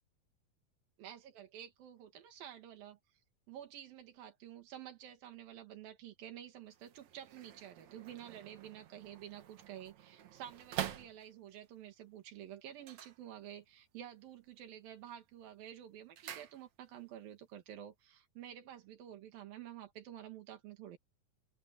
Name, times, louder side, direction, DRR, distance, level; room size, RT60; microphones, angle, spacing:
voice 1, 1.0-3.2 3.5-21.0, right 11 dB, 85° right, 3.5 m, -50 dB
sound 1, 6.7-11.7 12.7-13.9 14.2-14.7 15.0-17.1 17.4-17.5, right 10 dB, 60° right, 2.4 m, -47 dB
omnidirectional pair, 4.0 m